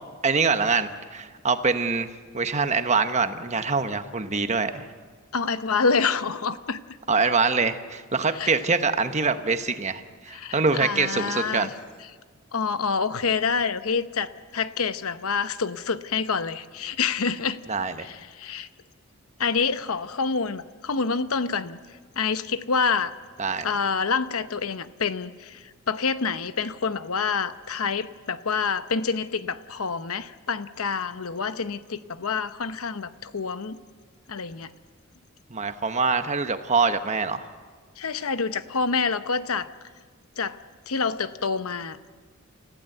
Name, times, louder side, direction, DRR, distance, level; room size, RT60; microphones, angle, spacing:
voice 1, 0.2-4.9 7.1-11.7 17.7-18.1 23.4-23.7 35.5-37.5, right 4 dB, 30° right, 9 dB, 1.1 m, -24 dB
voice 2, 5.3-6.8 8.3-8.5 10.3-11.7 12.5-17.6 18.0-18.7 19.4-21.8 22.2-23.2 23.6-33.8 34.3-34.7 38.0-39.7 40.4-40.6 40.9-42.1, left 5 dB, 80° left, 12 dB, 0.9 m, -27 dB
29.5 x 15.5 x 7.9 m, 1.5 s
head